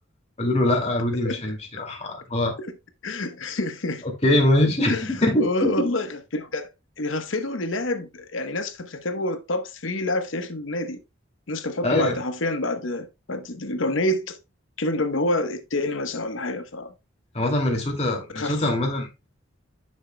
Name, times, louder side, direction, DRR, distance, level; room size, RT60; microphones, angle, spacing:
voice 1, 0.4-2.5 4.2-5.7 11.8-12.2 17.3-19.1, left 1 dB, 30° left, 2.3 m, -23 dB
voice 2, 3.0-4.1 4.9-11.0 11.5-14.4 14.8-16.9 18.3-18.6, left 2 dB, 75° left, 1.0 m, -28 dB
10.0 x 6.5 x 2.2 m
head